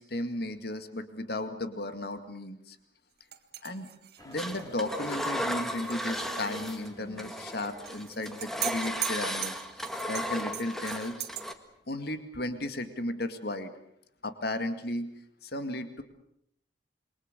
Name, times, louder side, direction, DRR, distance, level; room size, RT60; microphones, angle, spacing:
voice 1, 0.0-2.8 3.6-3.9 4.2-9.5 10.1-11.3 11.9-13.7 14.2-15.1 15.4-16.0, left 1 dB, 60° left, 9 dB, 2.2 m, -34 dB
sound 1, 3.3-6.1 6.4-6.5 7.8-11.4, right 13 dB, 60° right, 1.9 m, -39 dB
sound 2, 4.2-12.2, equal, 20° left, 4.0 m, -50 dB
Engine, 4.4-6.9 7.2-11.5, equal, ahead, 1.7 m, -35 dB
27.5 x 23.0 x 6.8 m, 0.73 s
head